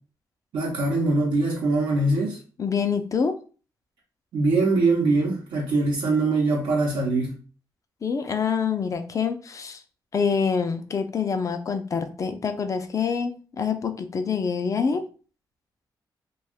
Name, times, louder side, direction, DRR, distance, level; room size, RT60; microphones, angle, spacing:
voice 1, 0.5-2.4 4.3-7.4, right 3 dB, 80° right, 0.8 m, -22 dB
voice 2, 2.6-3.4 8.0-9.8 10.1-15.0, left 6 dB, 45° left, 0.5 m, -26 dB
2.6 x 2.3 x 3.4 m
cardioid pair, 75°, 8 cm